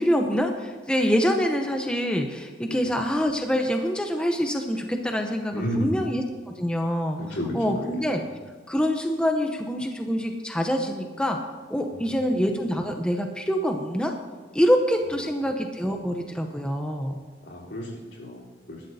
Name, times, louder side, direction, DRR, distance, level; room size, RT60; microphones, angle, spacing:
voice 1, 0.0-8.2 8.7-11.4 11.7-14.1 14.5-17.2, equal, 5° left, 3 dB, 0.7 m, -25 dB
voice 2, 5.5-5.9 7.2-7.9 11.9-12.1 17.5-18.8, equal, 70° left, -5 dB, 3.6 m, -32 dB
21.0 x 11.5 x 2.7 m, 1.4 s
head